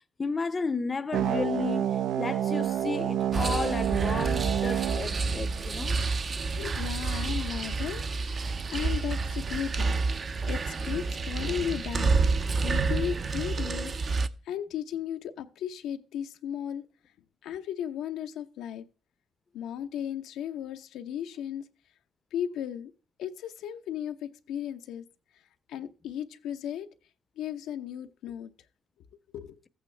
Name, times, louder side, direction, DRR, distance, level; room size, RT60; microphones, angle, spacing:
voice 1, 0.2-6.0, left 4 dB, 30° left, 0.6 m, -33 dB
sound 1, 1.1-6.1, right 10 dB, 80° right, 0.6 m, -29 dB
sound 2, 3.3-14.3, right 4 dB, 40° right, 0.6 m, -29 dB
voice 2, 6.4-10.0 10.5-16.9 17.4-18.8 19.5-21.7 22.3-22.9 23.2-25.0 25.7-26.9 27.4-28.5 29.3-29.6, left 9 dB, 85° left, 0.7 m, -36 dB
14.0 x 8.8 x 3.3 m
cardioid pair, 90°, 0 cm